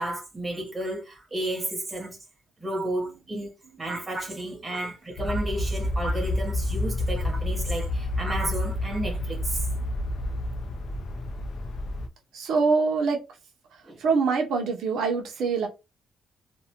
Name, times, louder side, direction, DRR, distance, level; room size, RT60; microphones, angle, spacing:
voice 1, 0.0-2.2 2.6-3.5 3.8-9.7 13.9-14.0, right 1 dB, 10° right, 0.8 m, -32 dB
sound 1, 5.2-12.1, left 1 dB, 50° left, 0.4 m, -29 dB
voice 2, 12.3-13.2 13.7-15.7, right 4 dB, 75° right, 0.6 m, -24 dB
2.6 x 2.1 x 2.8 m
cardioid pair, 180°, 0 cm